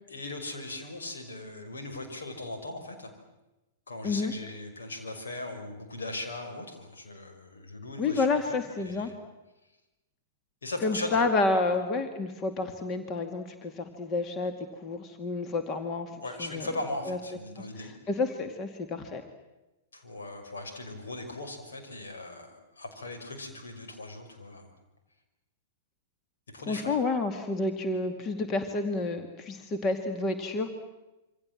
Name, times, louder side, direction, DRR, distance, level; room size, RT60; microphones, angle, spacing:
voice 1, 0.1-3.1 3.9-8.4 8.8-9.2 10.6-11.2 16.2-17.9 19.9-24.7 26.5-27.0, left 2 dB, 70° left, 4 dB, 5.8 m, -39 dB
voice 2, 8.0-9.1 10.8-14.5 14.8-16.1 16.4-16.7 17.1-17.2 17.6-19.2 26.7-30.7, left 3 dB, 30° left, 7 dB, 2.3 m, -29 dB
27.5 x 25.0 x 7.7 m, 1.0 s
figure-of-eight pair, 105°, 0 cm